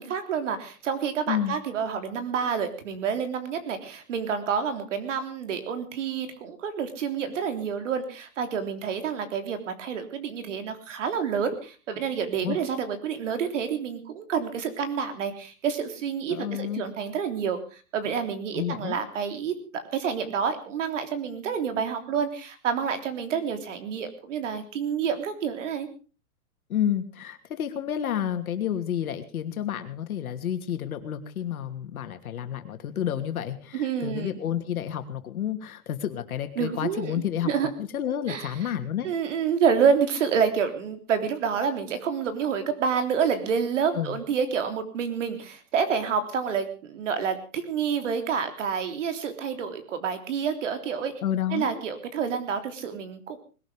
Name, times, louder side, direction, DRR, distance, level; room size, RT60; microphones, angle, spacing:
voice 1, 0.0-11.5 11.9-25.9 33.7-34.4 36.6-37.7 38.3-38.5 39.0-51.1 51.5-53.4, right 7 dB, 55° right, 8 dB, 3.6 m, -28 dB
voice 2, 16.3-16.8 18.5-19.0 26.7-37.5 37.8-39.1 43.9-44.2 51.2-51.8, left 10 dB, 75° left, 8 dB, 2.8 m, -30 dB
21.0 x 12.5 x 5.1 m, 0.37 s
hypercardioid pair, 175°, 44 cm